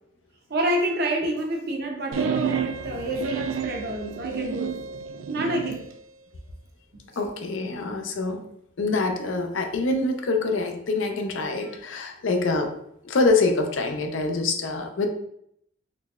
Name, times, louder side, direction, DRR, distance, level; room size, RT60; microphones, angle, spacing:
voice 1, 0.5-4.7 5.3-5.8, right 1 dB, 55° right, 2 dB, 0.7 m, -28 dB
sound 1, 2.1-5.9, right 7 dB, 90° right, 0.3 m, -30 dB
voice 2, 7.2-8.4 8.8-12.7 13.0-15.1, left 3 dB, 80° left, 4 dB, 0.5 m, -25 dB
3.9 x 3.1 x 2.3 m, 0.72 s
head